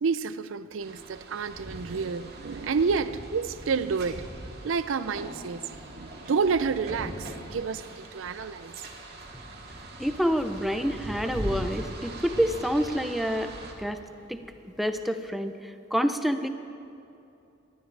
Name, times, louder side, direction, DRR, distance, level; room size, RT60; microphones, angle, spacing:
voice 1, 0.0-4.3 4.6-8.8, right 5 dB, 75° right, 0.5 m, -29 dB
sound 1, 0.8-13.7, right 2 dB, 55° right, 1.9 m, -43 dB
Thunder / Rain, 7.1-15.2, equal, 40° right, 1.4 m, -41 dB
voice 2, 10.0-13.5 13.8-14.0 14.3-14.4 14.6-16.5, equal, ahead, 0.6 m, -27 dB
24.5 x 12.5 x 3.3 m
head